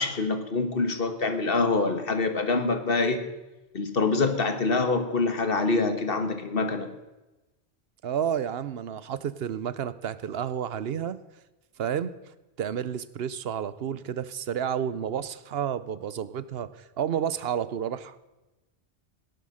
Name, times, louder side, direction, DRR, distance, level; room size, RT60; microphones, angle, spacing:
voice 1, 0.0-3.2 3.7-6.9, left 3 dB, 55° left, 8 dB, 1.6 m, -25 dB
voice 2, 8.0-11.2 11.8-12.1 12.6-16.7 17.0-18.3, right 9 dB, 65° right, 15 dB, 1.0 m, -30 dB
17.0 x 10.5 x 6.4 m, 1.1 s
omnidirectional pair, 1.1 m